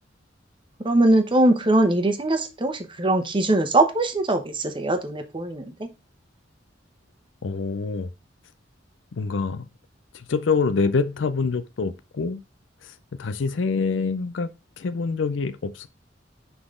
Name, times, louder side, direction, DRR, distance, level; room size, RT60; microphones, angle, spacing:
voice 1, 0.8-5.9, right 2 dB, 25° right, 1.0 m, -21 dB
voice 2, 7.4-8.1 9.1-9.7 10.1-12.4 12.8-14.5 14.8-15.9, left 4 dB, 75° left, 0.5 m, -26 dB
5.9 x 4.0 x 4.9 m
head